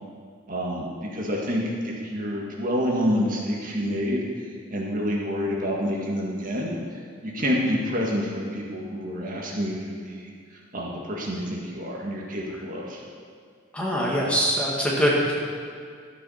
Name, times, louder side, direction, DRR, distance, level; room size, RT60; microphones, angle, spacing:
voice 1, 0.5-4.2 4.7-6.7 7.2-10.3 10.7-13.0, equal, 45° right, -2 dB, 1.9 m, -28 dB
voice 2, 13.7-15.3, equal, 5° left, -5 dB, 1.8 m, -23 dB
12.5 x 8.2 x 5.8 m, 2.1 s
head